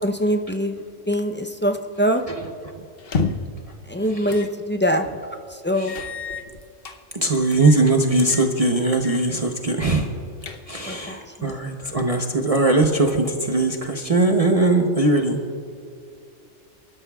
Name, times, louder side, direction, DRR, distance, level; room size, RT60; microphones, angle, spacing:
voice 1, 0.0-2.2 3.9-5.1 5.5-5.9 10.8-11.5 11.8-11.9, equal, 20° left, 5 dB, 0.3 m, -24 dB
sound 1, 3.0-3.6 4.3-4.5 4.9-5.0 5.9-7.0 7.5-7.9 8.2-8.5 8.9-9.3 9.6-9.7 10.2-10.9, left 4 dB, 55° left, 1.0 m, -30 dB
voice 2, 7.1-10.1 10.7-15.4, right 2 dB, 35° right, 2 dB, 0.8 m, -20 dB
29.5 x 12.0 x 2.3 m, 2.4 s
omnidirectional pair, 1.2 m